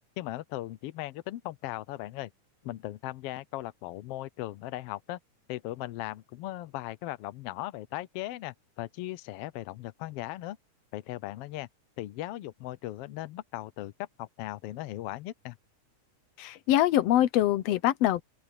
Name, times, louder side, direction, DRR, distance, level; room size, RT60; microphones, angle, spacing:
voice 1, 0.2-2.3 2.6-5.2 5.5-10.6 10.9-11.7 12.0-15.6, left 16 dB, 85° left, 1.3 m, -38 dB
voice 2, 16.4-18.2, left 13 dB, 70° left, 1.6 m, -24 dB
open air
omnidirectional pair, 3.5 m